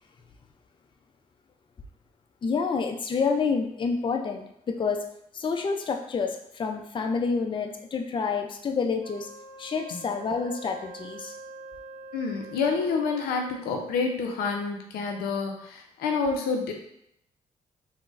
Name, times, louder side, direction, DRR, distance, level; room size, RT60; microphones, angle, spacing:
voice 1, 2.4-5.0 5.3-9.3 9.6-11.3, left 5 dB, 35° left, 5 dB, 0.4 m, -28 dB
Wind instrument woodwind instrument, 9.0-13.6, right 2 dB, 65° right, 0.6 m, -45 dB
voice 2, 12.1-16.7, left 4 dB, 90° left, 2 dB, 0.5 m, -28 dB
3.7 x 2.1 x 2.4 m, 0.74 s
supercardioid pair, 60°, 15 cm